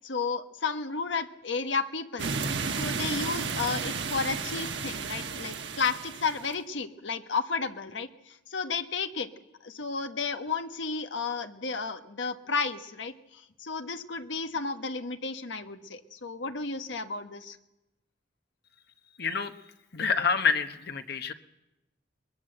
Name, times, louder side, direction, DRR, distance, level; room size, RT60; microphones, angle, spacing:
voice 1, 0.0-2.3 2.7-9.3 9.6-13.1 13.6-17.6, left 4 dB, 80° left, 7 dB, 1.3 m, -32 dB
sound 1, 2.2-6.5, right 5 dB, 70° right, 1.4 m, -33 dB
voice 2, 19.2-19.5 19.9-21.3, left 5 dB, 60° left, 7 dB, 1.2 m, -27 dB
21.5 x 21.5 x 7.8 m, 0.96 s
head